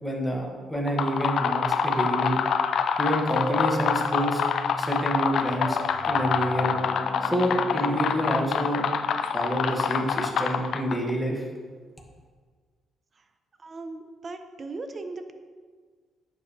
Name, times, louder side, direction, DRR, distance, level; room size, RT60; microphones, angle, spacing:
voice 1, 0.0-2.4 3.0-4.4 4.8-6.7 7.2-8.8 9.2-11.4, equal, ahead, -1 dB, 2.0 m, -28 dB
sound 1, 0.8-11.1, left 6 dB, 65° left, 0.5 m, -26 dB
sound 2, 3.3-9.5, left 1 dB, 25° left, 1.6 m, -36 dB
voice 2, 13.6-15.3, right 3 dB, 35° right, 8 dB, 0.9 m, -38 dB
10.5 x 7.8 x 3.4 m, 1.6 s
cardioid pair, 90°, 0 cm